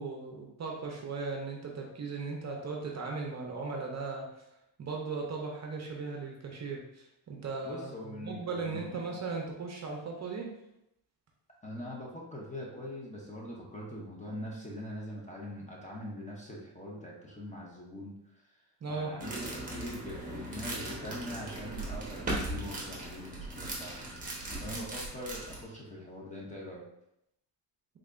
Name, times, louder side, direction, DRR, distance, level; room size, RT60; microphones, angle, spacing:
voice 1, 0.0-4.4 4.8-10.5 18.8-19.1, right 4 dB, 35° right, 0 dB, 0.6 m, -37 dB
voice 2, 7.6-9.0 11.6-24.1 24.6-26.8, equal, 15° left, -3 dB, 0.6 m, -43 dB
sound 1, 19.2-25.6, right 1 dB, 15° right, 0.9 m, -38 dB
3.7 x 3.3 x 2.5 m, 0.82 s
cardioid pair, 130°, 48 cm